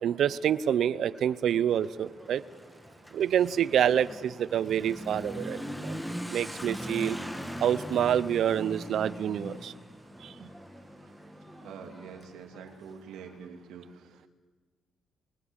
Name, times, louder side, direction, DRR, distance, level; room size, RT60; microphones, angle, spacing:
voice 1, 0.0-2.4 3.1-5.6 5.9-6.0 6.3-7.2 7.6-9.7, right 9 dB, 70° right, 17 dB, 0.6 m, -27 dB
Motorcycle / Accelerating revving vroom, 1.0-13.3, equal, ahead, 1.8 m, -41 dB
voice 2, 11.6-14.3, right 6 dB, 90° right, 3 dB, 2.9 m, -46 dB
28.5 x 17.5 x 7.3 m, 1.5 s
cardioid pair, 90°, 0 cm